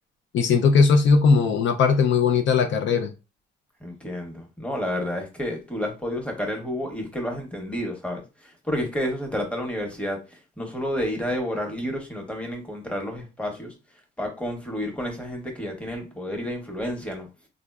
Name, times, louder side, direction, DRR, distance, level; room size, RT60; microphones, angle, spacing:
voice 1, 0.3-3.1, left 5 dB, 70° left, 0.5 m, -19 dB
voice 2, 3.8-13.7 14.2-17.3, equal, 5° left, 0.9 m, -30 dB
3.6 x 2.0 x 2.3 m
cardioid pair, 90°, 20 cm